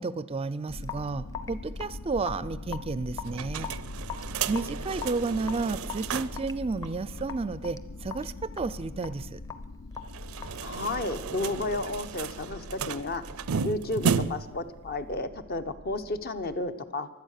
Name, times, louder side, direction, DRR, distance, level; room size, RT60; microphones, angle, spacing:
voice 1, 0.0-3.7 4.5-9.4, right 3 dB, 25° right, 16 dB, 0.4 m, -32 dB
sound 1, 0.7-16.6, left 2 dB, 85° left, 0.7 m, -42 dB
Raindrop / Drip, 0.8-11.3, left 7 dB, 15° left, 0.7 m, -43 dB
sound 2, 3.3-6.5 6.8-6.9 7.2-7.3 10.0-14.6, right 6 dB, 80° right, 0.5 m, -33 dB
voice 2, 10.6-13.2 13.6-17.1, left 2 dB, 45° left, 9 dB, 0.9 m, -32 dB
23.5 x 8.3 x 6.5 m, 1.1 s
head